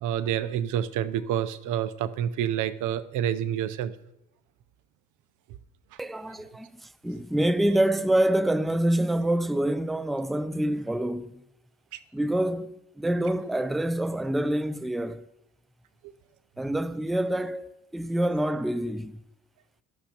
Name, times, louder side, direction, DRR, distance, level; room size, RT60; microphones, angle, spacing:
voice 1, 0.0-3.9 11.9-12.0 16.0-16.1, right 10 dB, 90° right, 0.6 m, -28 dB
voice 2, 6.0-11.4 12.1-15.2 16.6-19.2, right 1 dB, ahead, 0.4 m, -26 dB
18.0 x 12.5 x 2.9 m
cardioid pair, 90°, 30 cm